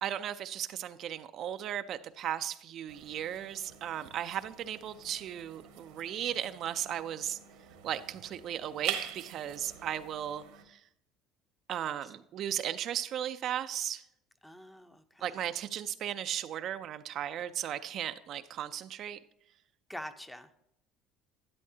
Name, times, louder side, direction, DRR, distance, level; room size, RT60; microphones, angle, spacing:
voice 1, 0.0-7.4 7.8-10.8 11.7-14.0 15.2-19.2, right 10 dB, 50° right, 10 dB, 0.4 m, -36 dB
sound 1, 2.9-10.6, right 10 dB, 85° right, 1.4 m, -45 dB
voice 2, 14.4-15.4 19.9-20.5, equal, 5° left, 9 dB, 0.6 m, -45 dB
12.0 x 9.7 x 2.8 m, 0.78 s
cardioid pair, 140°, 0 cm